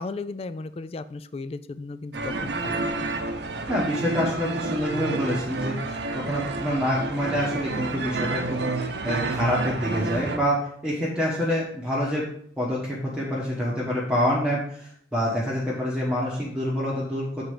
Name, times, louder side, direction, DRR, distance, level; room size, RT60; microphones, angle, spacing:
voice 1, 0.0-2.9, left 3 dB, 35° left, 14 dB, 0.3 m, -35 dB
sound 1, 2.1-10.4, right 3 dB, 70° right, 0.8 m, -29 dB
voice 2, 3.7-8.6 9.0-12.2 12.6-17.4, equal, 5° right, -6 dB, 1.3 m, -27 dB
7.4 x 4.4 x 4.9 m, 0.64 s
head